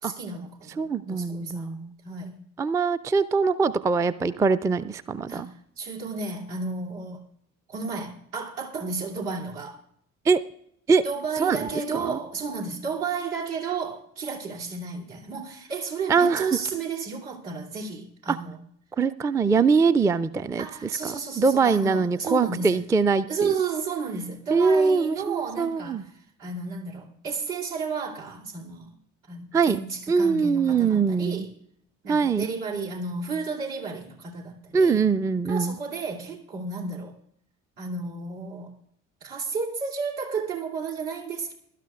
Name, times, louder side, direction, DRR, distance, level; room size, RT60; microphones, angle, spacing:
voice 1, 0.0-1.7 2.0-2.4 5.3-7.2 7.7-9.8 11.0-18.6 20.6-22.8 23.3-29.0 29.3-31.5 32.0-35.0 35.5-37.1 37.8-38.7 39.2-41.5, right 4 dB, 75° right, 2.9 m, -32 dB
voice 2, 0.8-1.9 2.6-5.5 10.3-10.4 10.9-11.0 11.4-11.7 11.9-12.2 16.1-16.5 18.3-18.4 19.0-23.5 24.5-26.0 29.5-29.8 30.1-31.5 32.1-32.5 34.7-35.7, right 5 dB, 10° right, 0.3 m, -23 dB
21.5 x 12.5 x 2.4 m
figure-of-eight pair, 50°, 42 cm